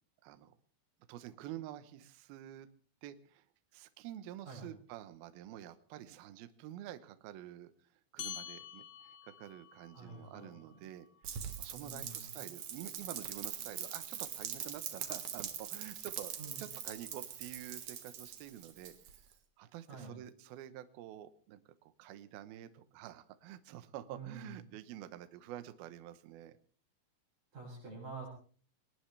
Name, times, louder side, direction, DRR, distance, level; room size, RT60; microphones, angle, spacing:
voice 1, 0.2-0.5 1.1-2.7 3.0-3.4 3.7-7.7 8.1-18.9 19.6-26.6, right 12 dB, 90° right, 11 dB, 2.1 m, -48 dB
sound 1, 8.2-13.0, left 10 dB, 65° left, 2.9 m, -50 dB
voice 2, 9.9-10.9 11.7-12.5 16.4-16.7 19.9-20.2 24.1-24.6 27.5-28.3, right 4 dB, 35° right, -1 dB, 7.8 m, -48 dB
Rain, 11.2-19.3, right 9 dB, 60° right, 2.1 m, -43 dB
22.0 x 19.0 x 3.3 m, 0.43 s
omnidirectional pair, 5.9 m